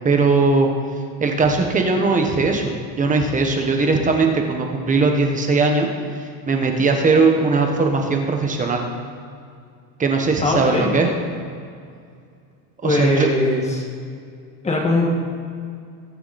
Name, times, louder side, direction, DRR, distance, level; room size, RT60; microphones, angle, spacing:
voice 1, 0.0-0.7 1.2-5.9 6.5-8.8 10.0-11.1 12.8-13.3, right 3 dB, 20° right, 3 dB, 1.4 m, -19 dB
voice 2, 10.4-10.9 12.8-13.8 14.6-15.1, left 2 dB, 15° left, 0 dB, 1.9 m, -20 dB
22.0 x 9.7 x 4.3 m, 2.3 s
cardioid pair, 170°, 41 cm